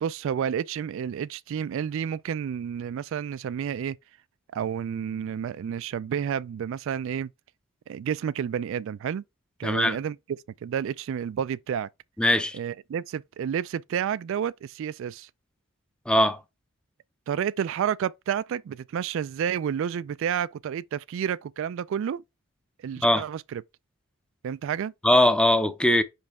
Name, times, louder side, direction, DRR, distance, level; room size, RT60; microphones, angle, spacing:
voice 1, 0.0-4.0 4.5-7.3 7.9-9.2 9.6-10.2 10.6-11.9 12.5-15.3 17.3-22.2 22.8-23.6 24.4-24.9, right 8 dB, 65° right, 0.3 m, -30 dB
voice 2, 9.6-10.0 12.2-12.6 16.1-16.4 23.0-23.2 25.0-26.0, left 1 dB, 5° left, 0.5 m, -21 dB
5.2 x 5.2 x 3.5 m
head